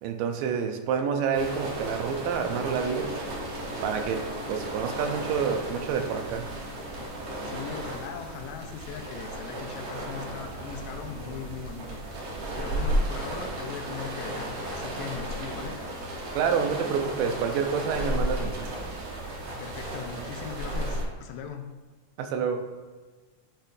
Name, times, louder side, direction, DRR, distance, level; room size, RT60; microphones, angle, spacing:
voice 1, 0.0-3.2 3.8-6.5 16.3-18.7 22.2-22.7, right 6 dB, 85° right, 6 dB, 2.2 m, -28 dB
sound 1, 1.3-21.0, right 1 dB, 60° right, 2.0 m, -34 dB
Gong, 2.4-20.3, left 2 dB, 70° left, 2.3 m, -50 dB
voice 2, 7.4-12.3 12.6-15.8 19.6-21.7, left 7 dB, 90° left, 5 dB, 2.3 m, -39 dB
10.0 x 4.3 x 2.6 m, 1.4 s
omnidirectional pair, 3.8 m